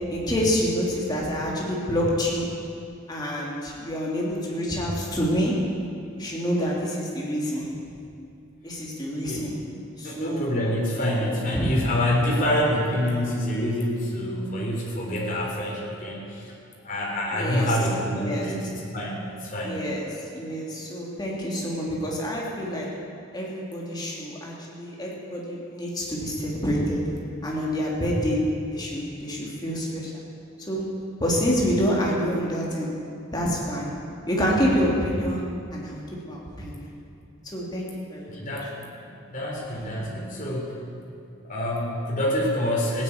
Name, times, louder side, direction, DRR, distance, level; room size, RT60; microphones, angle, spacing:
voice 1, 0.1-2.5 3.1-5.5 6.2-7.6 8.6-9.6 10.0-10.5 11.2-11.7 17.3-17.7 18.1-18.5 19.6-20.0 20.3-22.9 23.3-27.0 27.4-28.4 28.7-30.1 30.7-30.8 31.2-32.9 33.3-33.9 34.3-35.4 35.7-36.0 36.2-36.9 37.4-38.4, equal, 20° left, -4 dB, 2.8 m, -27 dB
voice 2, 9.1-9.6 10.0-16.5 16.8-19.8 38.3-38.7 39.0-40.7 41.4-43.0, equal, 40° left, -3 dB, 3.7 m, -27 dB
16.0 x 9.9 x 8.7 m, 2.5 s
head